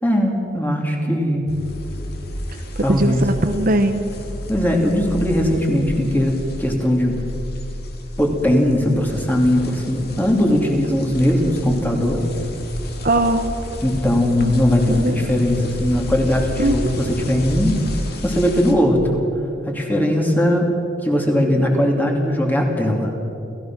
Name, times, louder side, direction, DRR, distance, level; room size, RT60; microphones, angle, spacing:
voice 1, 0.0-1.4 2.8-3.2 4.5-7.2 8.2-12.2 13.8-17.8 18.2-19.2 19.6-20.7 21.0-23.1, left 1 dB, 10° left, 1 dB, 2.8 m, -19 dB
sound 1, 1.5-18.7, equal, 55° left, 2.3 m, -31 dB
voice 2, 2.8-4.1 13.0-13.4 14.4-14.5 14.9-15.3 16.6-16.8, right 1 dB, 50° right, 7 dB, 1.0 m, -20 dB
29.0 x 15.5 x 6.2 m, 2.8 s
head